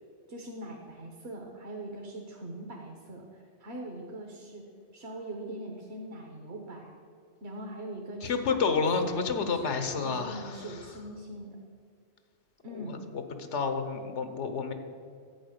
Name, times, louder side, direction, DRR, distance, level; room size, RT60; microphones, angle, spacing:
voice 1, 0.3-4.6 4.9-7.0 7.4-11.6 12.6-13.0, right 1 dB, 70° right, 1 dB, 1.5 m, -42 dB
voice 2, 8.2-10.8 12.7-14.7, left 5 dB, 90° left, 8 dB, 1.3 m, -30 dB
11.0 x 8.2 x 6.6 m, 2.3 s
omnidirectional pair, 1.2 m